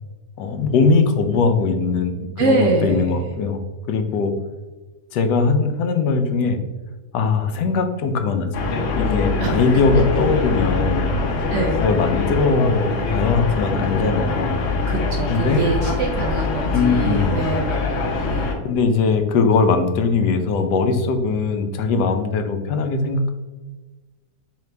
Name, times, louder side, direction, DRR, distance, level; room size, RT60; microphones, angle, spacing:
voice 1, 0.4-3.6 3.9-4.3 5.1-6.6 7.1-11.1 11.7-14.6 15.3-15.6 16.7-17.4 18.6-23.3, left 4 dB, 90° left, 7 dB, 1.2 m, -20 dB
voice 2, 2.4-3.2 9.4-9.6 11.5-11.8 14.9-18.5, right 3 dB, 70° right, 1 dB, 0.7 m, -24 dB
sound 1, 8.5-18.6, left 3 dB, 60° left, 0.7 m, -23 dB
3.8 x 3.3 x 3.2 m, 1.3 s
omnidirectional pair, 1.7 m